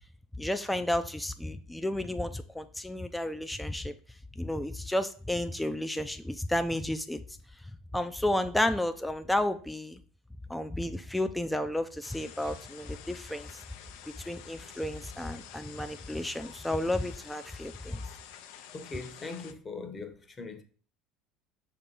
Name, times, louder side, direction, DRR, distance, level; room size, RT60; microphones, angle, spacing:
voice 1, 0.4-3.9 4.4-7.2 7.9-10.0 10.5-13.6 14.2-18.0, left 1 dB, 5° left, 0.4 m, -32 dB
sound 1, 12.0-19.5, left 9 dB, 80° left, 0.6 m, -49 dB
voice 2, 18.7-20.6, left 3 dB, 25° left, 0.9 m, -40 dB
6.2 x 2.9 x 5.3 m
supercardioid pair, 115°, 0 cm